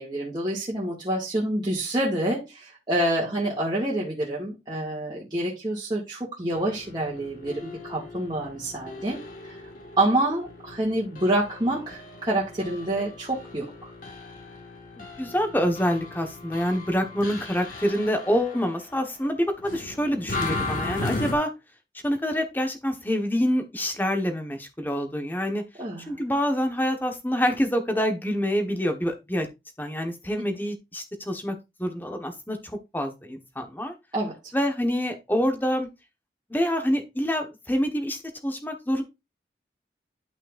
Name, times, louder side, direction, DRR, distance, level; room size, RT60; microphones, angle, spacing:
voice 1, 0.0-9.2 9.4-9.6 10.0-13.9 25.8-26.2 34.1-34.3, right 1 dB, 25° right, -6 dB, 2.1 m, -27 dB
sound 1, 6.5-19.0 19.6-21.3, left 2 dB, 50° left, 1.8 m, -37 dB
voice 2, 15.2-21.5 22.0-25.6 26.1-29.5 29.8-32.6 32.9-33.9 34.5-35.9 36.5-39.0, equal, 10° left, 5 dB, 1.3 m, -26 dB
11.5 x 5.7 x 2.6 m, 0.24 s
head